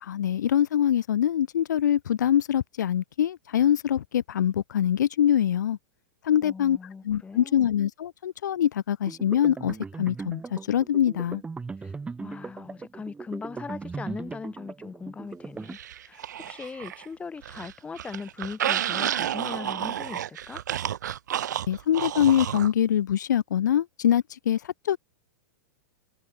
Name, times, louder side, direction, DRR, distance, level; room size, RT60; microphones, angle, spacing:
voice 1, 0.0-5.8 6.2-6.8 7.0-11.4 21.7-25.0, left 10 dB, 90° left, 0.7 m, -24 dB
voice 2, 6.4-7.7 11.8-11.9 12.2-15.8 16.0-20.6, left 5 dB, 15° left, 4.4 m, -39 dB
sound 1, 9.1-15.7, right 4 dB, 10° right, 4.5 m, -38 dB
sound 2, 15.7-17.1 17.4-22.7, right 10 dB, 85° right, 3.7 m, -31 dB
hypercardioid pair, 135°, 9 cm